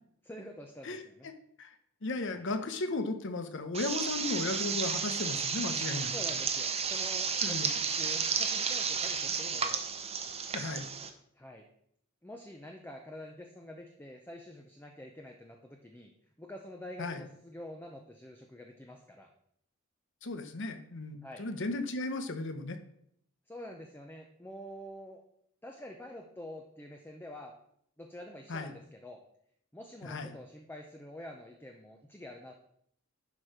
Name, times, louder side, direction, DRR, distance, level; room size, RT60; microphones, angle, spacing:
voice 1, 0.3-1.3 2.3-2.5 6.1-9.8 11.3-11.7 12.2-16.1 16.4-19.3 21.2-21.4 23.5-25.2 25.6-27.6 28.0-29.2 29.7-32.5, left 1 dB, 10° left, 2 dB, 0.7 m, -47 dB
voice 2, 0.8-1.3 1.6-1.7 2.0-6.1 7.4-7.7 10.5-10.9 17.0-17.2 20.2-22.8 28.5-28.7 30.0-30.4, left 2 dB, 65° left, 8 dB, 0.9 m, -35 dB
sound 1, 3.7-11.1, right 6 dB, 30° right, 0.8 m, -32 dB
11.0 x 4.6 x 5.0 m, 0.70 s
head